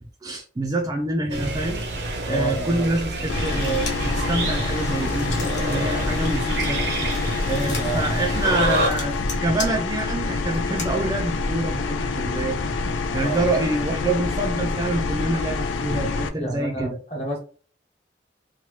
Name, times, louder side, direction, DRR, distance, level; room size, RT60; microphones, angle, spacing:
voice 1, 0.2-1.8 2.2-6.8 7.4-12.6 13.1-17.0, right 2 dB, 20° right, 2 dB, 0.4 m, -26 dB
sound 1, 1.3-8.9, right 2 dB, 60° right, 0.6 m, -28 dB
voice 2, 2.3-2.9 7.8-8.1 13.2-13.6 16.4-17.4, right 2 dB, 35° left, 0 dB, 1.0 m, -30 dB
sound 2, 3.3-16.3, left 3 dB, 90° left, 0.4 m, -27 dB
sound 3, 3.5-4.1 4.6-5.8 6.2-10.9, left 4 dB, 65° left, 0.9 m, -37 dB
2.9 x 2.2 x 3.1 m, 0.39 s
head